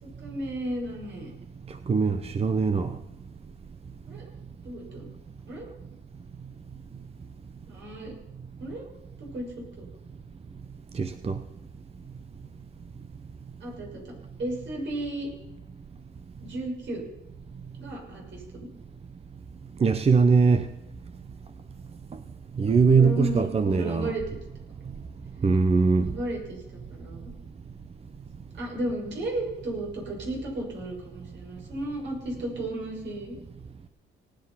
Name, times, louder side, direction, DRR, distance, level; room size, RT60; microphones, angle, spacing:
voice 1, 0.0-1.3 4.1-4.3 4.6-5.1 5.5-5.7 7.7-8.1 8.6-8.9 9.2-9.8 13.6-14.1 14.4-15.3 16.4-17.0 17.8-18.7 22.7-24.2 26.0-26.6 26.9-27.3 28.5-33.4, right 1 dB, 65° right, 6.4 m, -34 dB
voice 2, 1.9-2.9 10.9-11.4 19.8-20.7 22.6-24.1 25.4-26.1, right 5 dB, 30° right, 0.8 m, -21 dB
18.5 x 9.4 x 5.7 m
cardioid pair, 90°, 20 cm